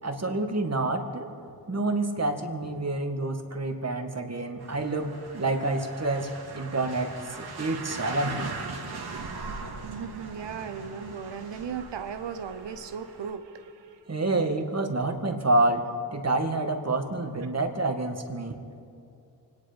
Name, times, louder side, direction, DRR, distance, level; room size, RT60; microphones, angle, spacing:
voice 1, 0.0-1.3 1.7-8.5 14.1-15.9 16.1-18.6, right 2 dB, 35° right, 4 dB, 2.0 m, -28 dB
sound 1, 4.6-13.3, right 4 dB, 65° right, 2.2 m, -40 dB
voice 2, 9.8-14.0, right 6 dB, 90° right, 9 dB, 1.1 m, -37 dB
25.0 x 10.5 x 5.3 m, 2.6 s
cardioid pair, 50°, 42 cm